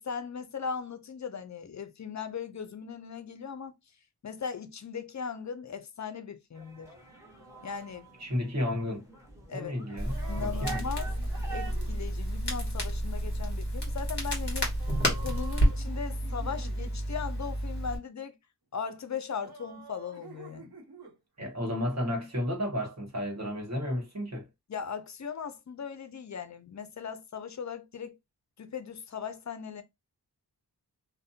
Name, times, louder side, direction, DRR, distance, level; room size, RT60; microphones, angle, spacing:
voice 1, 0.0-3.8 4.2-6.9 7.6-8.1 9.5-9.7 10.3-11.1 11.5-14.7 15.2-18.3 18.7-20.7 24.7-28.2 28.6-29.8, left 6 dB, 45° left, 0.5 m, -38 dB
sound 1, 6.6-11.7, right 4 dB, 5° right, 1.0 m, -45 dB
voice 2, 8.2-9.0 9.5-10.8 21.4-24.5, left 1 dB, 40° right, 1.2 m, -32 dB
Crackle, 10.0-18.0, equal, 25° left, 1.4 m, -30 dB
sound 2, 10.1-12.0 14.8-17.0 19.4-21.2, right 4 dB, 65° right, 0.9 m, -49 dB
2.5 x 2.1 x 2.7 m
wide cardioid pair, 75°, 41 cm